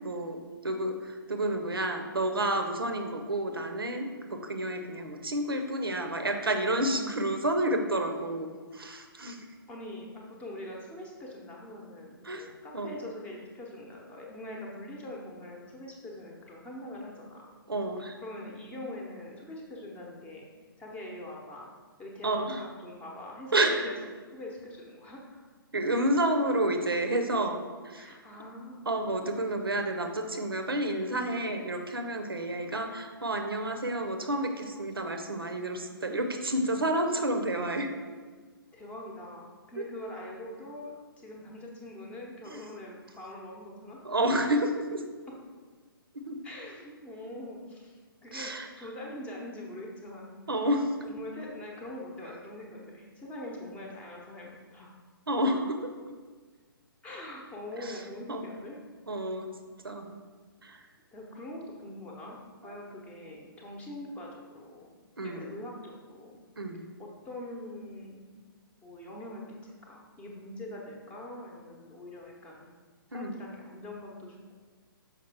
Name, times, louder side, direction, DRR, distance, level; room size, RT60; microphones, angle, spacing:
voice 1, 0.0-9.5 12.2-13.0 17.7-18.2 22.2-22.6 23.5-23.9 25.7-28.2 28.9-37.9 39.8-39.9 42.5-42.6 44.0-45.0 46.1-46.4 48.3-48.7 50.5-51.1 55.3-55.9 57.8-58.0 58.3-58.5 59.1-59.5 59.8-60.2 60.6-60.8 62.6-62.7 65.2-65.5 66.6-66.8 73.1-73.4, right 1 dB, 75° right, 6 dB, 0.7 m, -30 dB
voice 2, 6.7-7.1 9.7-17.5 18.2-20.5 20.8-21.7 22.0-24.0 24.3-25.4 28.0-29.0 38.7-44.0 46.4-50.3 51.1-55.0 57.0-58.8 61.1-64.9 65.2-66.4 67.0-68.3 68.8-72.7 73.1-74.6, left 1 dB, 10° left, -2 dB, 0.8 m, -43 dB
5.8 x 4.9 x 3.4 m, 1.4 s
figure-of-eight pair, 125°, 12 cm